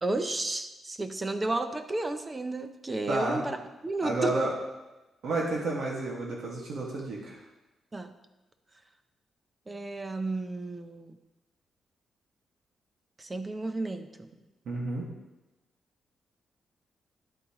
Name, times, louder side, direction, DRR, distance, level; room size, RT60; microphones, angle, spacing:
voice 1, 0.0-3.6 3.8-4.3 7.9-8.1 9.7-11.2 13.2-14.3, right 2 dB, 15° right, 8 dB, 0.5 m, -32 dB
voice 2, 3.1-3.4 4.0-4.5 5.2-7.4 14.7-15.1, right 2 dB, 65° right, -3 dB, 1.8 m, -31 dB
11.0 x 8.3 x 3.0 m, 1.0 s
wide cardioid pair, 165°, 0 cm